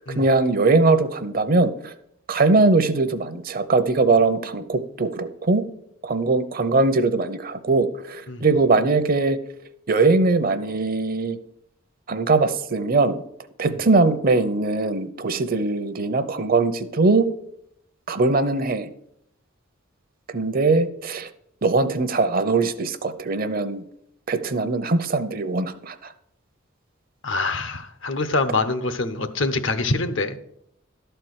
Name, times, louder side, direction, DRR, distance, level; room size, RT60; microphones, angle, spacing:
voice 1, 0.1-1.9 2.3-5.6 6.0-9.4 9.9-11.4 12.1-13.2 13.6-17.3 18.1-18.9 20.3-21.3 21.6-23.8 24.3-26.0, right 3 dB, 45° right, 11 dB, 0.7 m, -21 dB
voice 2, 27.2-30.4, left 3 dB, 65° left, 11 dB, 0.9 m, -25 dB
12.0 x 4.5 x 8.0 m, 0.76 s
head